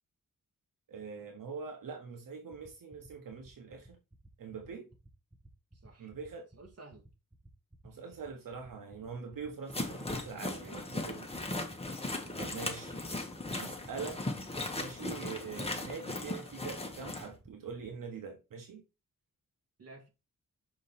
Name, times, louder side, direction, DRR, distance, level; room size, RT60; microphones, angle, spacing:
voice 1, 0.9-4.0 4.4-4.9 6.0-6.5 7.8-11.3 12.4-13.0 13.6-14.2 14.7-18.8, right 5 dB, 80° right, 1.3 m, -43 dB
sound 1, 2.5-17.9, right 1 dB, 5° right, 1.2 m, -56 dB
voice 2, 6.5-7.0 10.9-11.3 12.2-12.6 19.8-20.1, right 3 dB, 50° right, 2.5 m, -53 dB
sound 2, 9.7-17.3, left 2 dB, 20° left, 1.5 m, -38 dB
6.6 x 5.3 x 4.2 m
wide cardioid pair, 115°, 33 cm